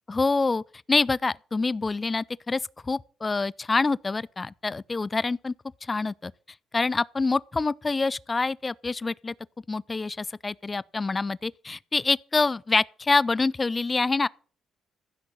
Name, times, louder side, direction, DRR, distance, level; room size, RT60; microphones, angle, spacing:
voice 1, 0.1-0.6 0.9-5.5 5.8-6.3 6.7-9.3 9.7-14.3, left 3 dB, 25° left, 0.5 m, -26 dB
15.5 x 6.2 x 7.0 m
cardioid pair, 90°, 0 cm